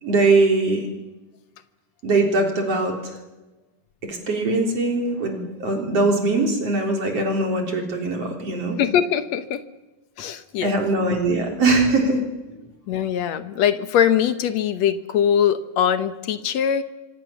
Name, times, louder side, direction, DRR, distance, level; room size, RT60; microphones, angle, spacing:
voice 1, 0.0-0.8 2.0-3.2 4.1-8.8 10.6-12.2, right 3 dB, 45° right, 3 dB, 4.6 m, -21 dB
voice 2, 8.8-9.6 10.2-10.8 12.9-16.8, left 9 dB, 65° left, 11 dB, 2.0 m, -21 dB
25.5 x 25.5 x 7.1 m, 1.1 s
omnidirectional pair, 3.9 m